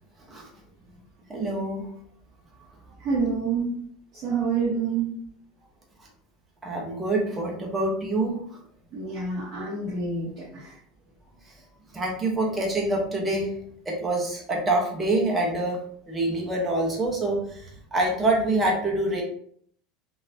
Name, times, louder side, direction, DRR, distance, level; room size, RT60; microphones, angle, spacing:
voice 1, 1.3-1.9 6.6-8.6 11.9-13.5 13.9-15.8 16.1-19.2, right 2 dB, 10° right, -3 dB, 0.8 m, -26 dB
voice 2, 3.0-3.7 4.1-5.1 8.9-10.8, right 5 dB, 35° right, -7 dB, 1.0 m, -27 dB
3.8 x 2.6 x 2.6 m, 0.63 s
supercardioid pair, 155°, 0 cm